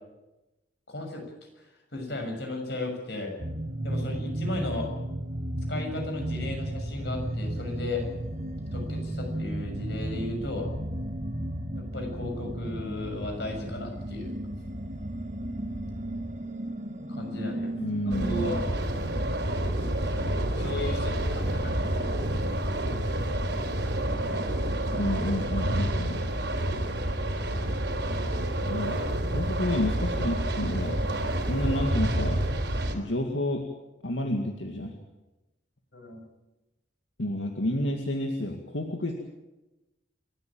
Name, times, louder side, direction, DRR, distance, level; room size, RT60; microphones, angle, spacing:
voice 1, 0.9-1.2 1.6-3.3 3.8-4.9 5.7-8.1 8.7-10.7 11.7-14.3 17.1-17.7 18.1-18.7 20.5-22.4 28.6-29.2 35.9-36.2, left 2 dB, 65° left, 3 dB, 6.7 m, -35 dB
sound 1, 3.4-18.7, right 1 dB, 40° right, 1.6 m, -34 dB
sound 2, 6.4-16.3, equal, 85° right, 3.9 m, -41 dB
voice 2, 17.7-18.5 24.9-26.3 28.7-29.0 29.3-31.1 31.4-32.4 32.9-33.7 34.0-35.0 37.2-39.1, left 1 dB, 85° left, 3 dB, 2.2 m, -30 dB
sound 3, 18.1-32.9, right 1 dB, 65° right, 3.9 m, -28 dB
28.5 x 13.5 x 9.0 m, 1.0 s
head